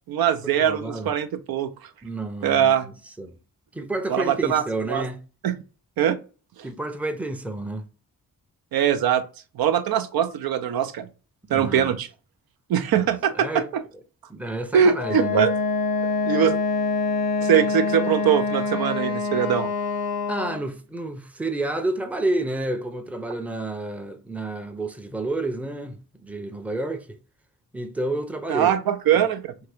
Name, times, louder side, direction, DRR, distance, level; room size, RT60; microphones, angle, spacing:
voice 1, 0.1-1.7 2.4-2.9 4.1-4.6 4.9-5.0 5.4-5.5 6.0-6.2 8.7-9.2 9.6-11.1 11.5-12.1 12.7-13.8 14.7-15.5 16.3-16.6 17.4-19.7 28.5-29.5, right 9 dB, 75° right, 0.5 m, -22 dB
voice 2, 0.6-1.1 2.0-3.4 3.7-5.2 6.6-7.9 11.5-11.9 12.9-13.7 14.3-15.5 20.3-27.2 27.7-28.7 29.1-29.2, right 2 dB, 5° right, 0.5 m, -30 dB
Wind instrument woodwind instrument, 15.0-20.7, left 4 dB, 80° left, 0.8 m, -25 dB
2.8 x 2.8 x 3.3 m
cardioid pair, 60°, 37 cm